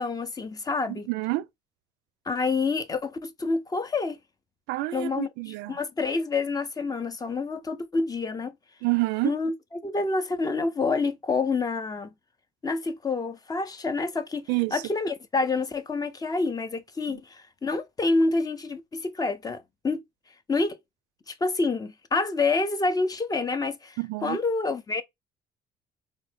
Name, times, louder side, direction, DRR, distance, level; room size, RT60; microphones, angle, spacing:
voice 1, 0.0-1.1 2.3-4.2 4.9-5.3 5.7-8.5 9.2-9.5 9.8-12.1 12.6-14.4 14.7-20.0 20.5-20.8 21.3-25.0, left 3 dB, 20° left, 0.5 m, -27 dB
voice 2, 0.9-1.5 4.7-5.8 8.8-9.3 14.5-14.8 24.0-24.4, right 21 dB, 90° right, 0.4 m, -28 dB
3.8 x 2.1 x 3.2 m
cardioid pair, 110°, 17 cm